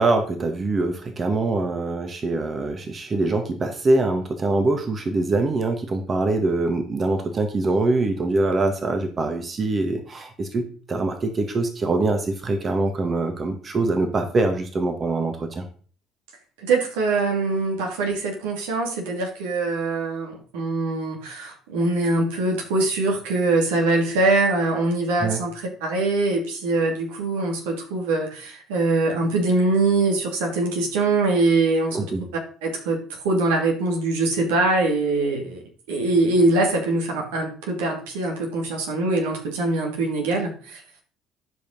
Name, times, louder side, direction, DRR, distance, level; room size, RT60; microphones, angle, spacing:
voice 1, 0.0-15.6 25.2-25.4 31.9-32.2, right 2 dB, 35° right, 5 dB, 1.7 m, -23 dB
voice 2, 16.6-32.1 32.6-35.6 35.9-40.8, right 2 dB, 75° right, 1 dB, 2.7 m, -23 dB
11.0 x 5.3 x 5.3 m, 0.42 s
hypercardioid pair, 60°, 0 cm